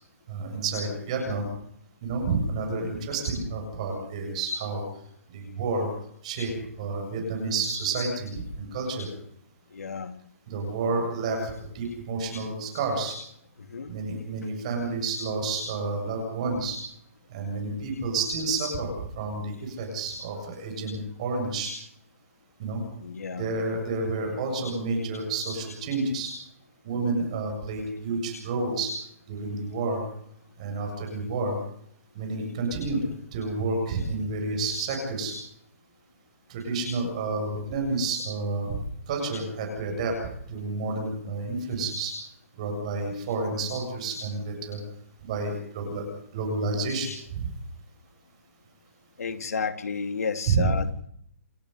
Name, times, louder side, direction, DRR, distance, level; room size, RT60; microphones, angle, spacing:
voice 1, 0.3-1.5 2.0-4.8 5.3-5.9 6.2-6.5 6.8-9.1 10.5-13.2 13.9-16.8 17.3-21.7 22.6-22.8 23.3-26.3 26.8-28.9 29.3-30.0 30.6-31.6 32.1-33.0 33.3-35.4 36.5-38.8 39.1-40.2 40.5-42.1 42.6-44.8 45.2-46.0 46.3-47.5 50.5-50.7, right 3 dB, 25° right, 2 dB, 7.5 m, -30 dB
voice 2, 9.7-10.1 13.7-13.9 23.0-23.5 49.2-50.9, left 5 dB, 85° left, 7 dB, 2.9 m, -31 dB
29.0 x 12.0 x 8.2 m, 0.67 s
hypercardioid pair, 180°, 8 cm